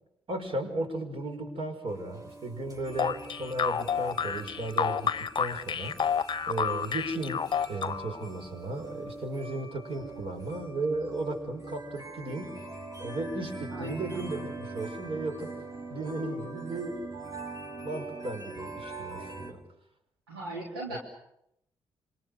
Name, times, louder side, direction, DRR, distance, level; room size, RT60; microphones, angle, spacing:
voice 1, 0.3-12.7 13.0-15.5 15.9-17.0 17.8-19.6 20.9-21.0, right 2 dB, 50° right, 6 dB, 5.6 m, -35 dB
sound 1, 1.9-19.5, right 2 dB, 30° right, 6.2 m, -43 dB
sound 2, 3.0-8.3, left 7 dB, 40° left, 0.9 m, -30 dB
voice 2, 13.7-14.2 20.3-21.0, right 2 dB, 90° right, -1 dB, 3.2 m, -38 dB
27.0 x 24.5 x 6.6 m, 0.77 s
hypercardioid pair, 40°, 12 cm